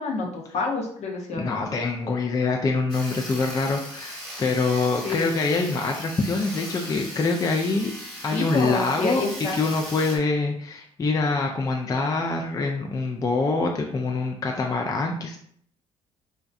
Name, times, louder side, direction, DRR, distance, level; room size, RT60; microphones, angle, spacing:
voice 1, 0.0-1.5 5.0-5.3 8.3-9.6, left 3 dB, 55° left, 0 dB, 0.7 m, -28 dB
voice 2, 1.4-7.9 8.2-9.2 9.5-15.4, left 3 dB, 25° left, 1 dB, 0.4 m, -25 dB
Sawing, 2.9-10.2, equal, 5° left, 1.2 m, -38 dB
2.6 x 2.1 x 2.4 m, 0.63 s
supercardioid pair, 60°, 13 cm